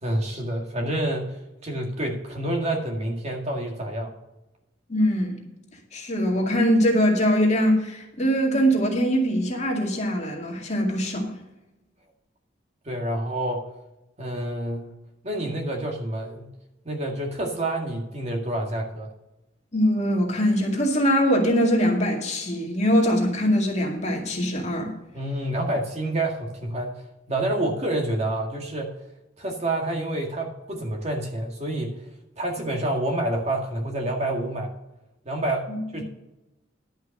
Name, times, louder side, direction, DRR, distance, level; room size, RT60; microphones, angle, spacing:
voice 1, 0.0-4.1 12.9-13.6 14.2-14.9 15.2-16.5 16.9-19.1 25.1-26.9 27.3-28.9 29.4-32.0 32.4-34.7 35.3-35.7 35.9-36.0, right 1 dB, 35° right, 1 dB, 1.9 m, -28 dB
voice 2, 4.9-5.4 5.9-11.3 19.7-24.9 35.7-35.8, equal, 35° left, 0 dB, 2.1 m, -22 dB
11.5 x 5.6 x 6.5 m, 0.93 s
head